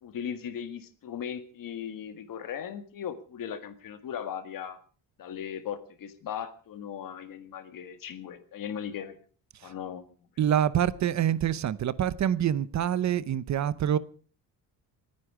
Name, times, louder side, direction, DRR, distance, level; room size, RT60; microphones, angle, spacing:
voice 1, 0.0-4.8 5.2-9.2 9.6-10.0, left 8 dB, 55° left, 1.8 m, -38 dB
voice 2, 10.4-14.0, right 10 dB, 45° right, 0.7 m, -26 dB
28.5 x 9.8 x 4.8 m
cardioid pair, 170°, 40 cm